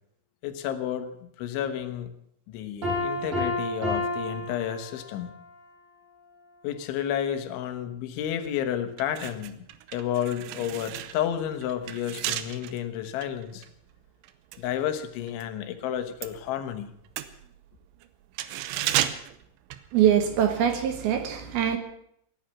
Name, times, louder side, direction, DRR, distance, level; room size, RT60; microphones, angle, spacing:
voice 1, 0.4-2.1 2.5-5.4 6.6-9.6 9.9-13.7 14.6-16.9, left 10 dB, 80° left, 8 dB, 3.7 m, -31 dB
Piano, 2.8-5.4, left 1 dB, 35° right, 6.6 m, -30 dB
sound 1, 8.3-8.5 8.9-15.5 15.8-20.4 20.7-20.9, right 13 dB, 85° right, 3.2 m, -34 dB
voice 2, 19.9-21.8, right 9 dB, 70° right, 8 dB, 2.6 m, -23 dB
17.5 x 11.0 x 7.1 m, 0.70 s
omnidirectional pair, 5.4 m